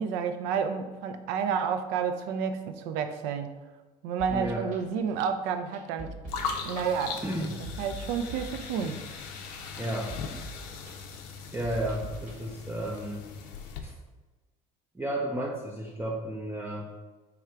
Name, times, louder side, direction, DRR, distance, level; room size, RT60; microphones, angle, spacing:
voice 1, 0.0-3.5 4.0-6.1 6.6-7.2 7.8-9.0, right 6 dB, 70° right, 8 dB, 0.4 m, -30 dB
sound 1, 4.2-12.4, right 2 dB, 45° right, 1.1 m, -44 dB
voice 2, 4.3-4.7 7.2-7.6 9.8-10.2 11.5-13.2 13.8-14.0 14.9-16.9, right 1 dB, 10° right, -2 dB, 0.5 m, -33 dB
sound 2, 6.3-13.8, left 5 dB, 80° left, 0.5 m, -39 dB
3.4 x 2.4 x 4.3 m, 1.2 s
hypercardioid pair, 75°, 20 cm